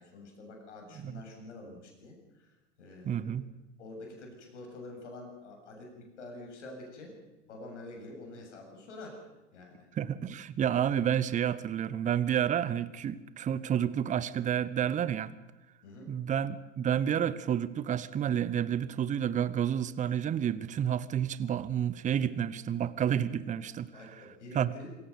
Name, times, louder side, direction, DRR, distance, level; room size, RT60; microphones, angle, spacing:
voice 1, 0.0-2.5 2.8-3.4 3.8-7.2 7.5-9.2 9.5-9.9 15.8-16.1 23.9-24.9, left 2 dB, 70° left, 2 dB, 7.6 m, -47 dB
voice 2, 3.0-3.4 9.9-15.3 16.1-23.9 24.5-24.7, right 9 dB, 20° right, 17 dB, 0.9 m, -30 dB
26.0 x 15.5 x 6.9 m, 1.1 s
figure-of-eight pair, 95°, 37 cm